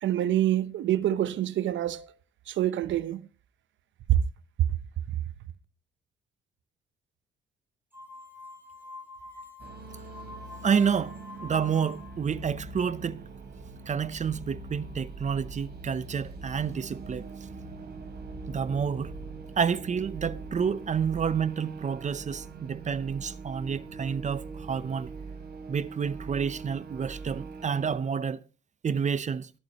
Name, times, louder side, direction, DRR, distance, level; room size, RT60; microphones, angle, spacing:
voice 1, 0.0-2.1 2.5-3.3 4.1-4.2, right 12 dB, 70° right, 0.9 m, -26 dB
sound 1, 7.9-12.3, left 2 dB, 10° right, 3.4 m, -46 dB
sound 2, 9.6-28.0, right 3 dB, 55° right, 3.2 m, -42 dB
voice 2, 10.6-11.2 11.4-13.2 13.9-17.3 18.5-19.1 19.6-25.1 25.7-28.4 28.8-29.5, right 7 dB, 35° right, 0.7 m, -29 dB
22.5 x 8.8 x 3.0 m
cardioid pair, 90°, 20 cm